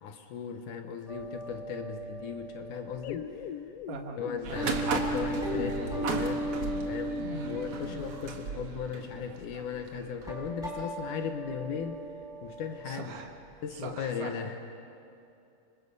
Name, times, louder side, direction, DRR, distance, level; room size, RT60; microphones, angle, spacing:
voice 1, 0.0-3.5 4.2-6.5 6.9-7.2 7.5-12.0 12.4-13.1 13.6-14.6, left 7 dB, 70° left, 5 dB, 2.5 m, -37 dB
sound 1, 1.1-3.1 4.0-4.1 4.5-8.8 9.5-9.7 10.2-13.1 13.4-13.5 14.0-14.1, right 1 dB, ahead, 5.2 m, -37 dB
sound 2, 3.0-8.5, left 10 dB, 90° left, 1.4 m, -42 dB
voice 2, 3.9-4.7 7.2-7.6 12.9-13.3 13.7-14.4, right 4 dB, 70° right, 2 dB, 3.3 m, -41 dB
sound 3, 4.4-10.3, right 4 dB, 50° right, 2.0 m, -36 dB
30.0 x 25.5 x 5.5 m, 2.7 s
omnidirectional pair, 3.9 m